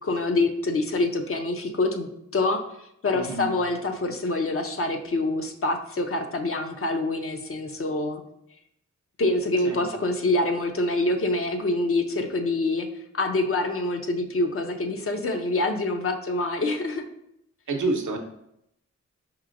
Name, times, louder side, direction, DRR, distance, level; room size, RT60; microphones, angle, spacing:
voice 1, 0.0-8.2 9.2-12.9 13.1-17.0, left 2 dB, 45° left, 4 dB, 0.6 m, -26 dB
voice 2, 3.1-3.5 9.6-9.8 17.7-18.2, right 3 dB, 85° right, 3 dB, 0.6 m, -28 dB
5.0 x 3.0 x 2.5 m, 0.78 s
cardioid pair, 60°, 30 cm